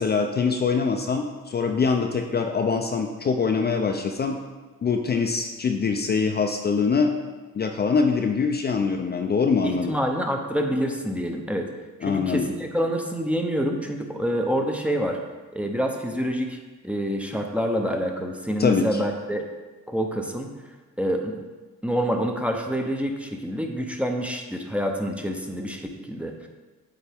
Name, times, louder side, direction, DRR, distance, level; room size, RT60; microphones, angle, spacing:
voice 1, 0.0-4.4 4.8-7.1 7.6-10.0 12.0-12.5 18.6-19.0, left 5 dB, 35° left, 4 dB, 0.5 m, -23 dB
voice 2, 9.6-11.7 12.0-15.2 15.5-16.6 16.8-19.5 19.9-20.5 21.0-21.4 21.8-26.3, equal, 5° right, 2 dB, 0.7 m, -27 dB
8.7 x 3.5 x 3.5 m, 1.3 s
cardioid pair, 90°, 30 cm